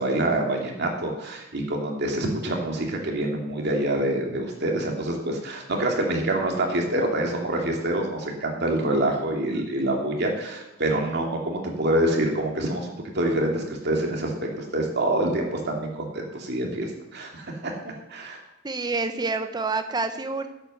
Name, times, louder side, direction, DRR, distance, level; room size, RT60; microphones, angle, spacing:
voice 1, 0.0-14.3 14.7-17.7 18.1-18.4, right 1 dB, 55° right, 1 dB, 2.5 m, -26 dB
voice 2, 18.6-20.5, right 3 dB, 20° right, 9 dB, 0.8 m, -27 dB
11.0 x 8.0 x 6.6 m, 0.93 s
head